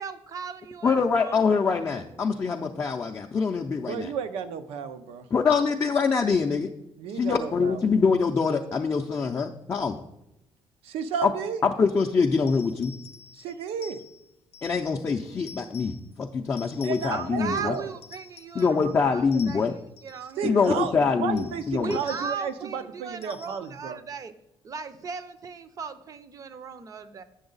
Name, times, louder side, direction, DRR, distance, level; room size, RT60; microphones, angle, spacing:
voice 1, 0.0-1.6 17.1-20.6 21.8-24.3 24.6-27.2, right 5 dB, 35° right, 12 dB, 0.6 m, -37 dB
voice 2, 0.8-4.1 5.3-6.7 7.1-10.0 11.2-11.3 11.6-12.9 14.6-17.7 18.5-19.7 20.4-22.0, left 5 dB, 25° left, 3 dB, 0.4 m, -24 dB
voice 3, 3.9-5.3 7.0-7.8 10.8-11.6 13.4-14.0 16.8-17.9 20.4-24.0, right 7 dB, 90° right, 10 dB, 0.6 m, -32 dB
sound 1, 12.4-15.0 15.4-16.1 16.6-17.4 17.7-19.0 19.3-20.3 20.6-20.9 21.4-22.5 23.2-23.8, left 6 dB, 70° left, 0.6 m, -48 dB
7.9 x 6.3 x 3.9 m, 0.85 s
cardioid pair, 145°, 10 cm